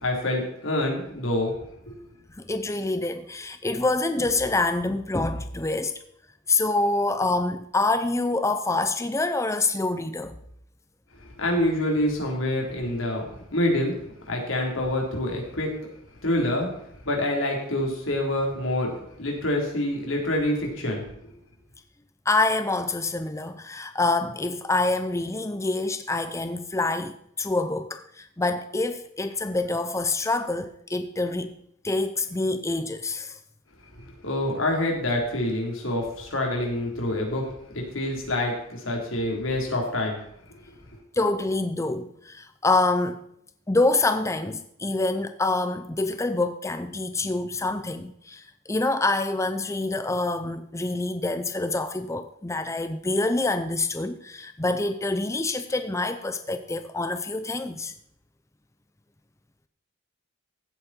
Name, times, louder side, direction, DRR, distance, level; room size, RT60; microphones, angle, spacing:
voice 1, 0.0-1.6 1.9-2.0 11.4-14.0 14.3-15.8 16.2-16.7 17.1-18.9 19.2-21.0 34.2-37.5 37.7-40.2 40.5-40.6, left 1 dB, 85° left, 3.9 m, -26 dB
voice 2, 2.4-6.0 6.5-10.4 22.3-31.5 31.8-33.4 41.1-43.2 43.7-57.9, left 2 dB, 15° left, 0.6 m, -26 dB
15.5 x 8.7 x 4.4 m
head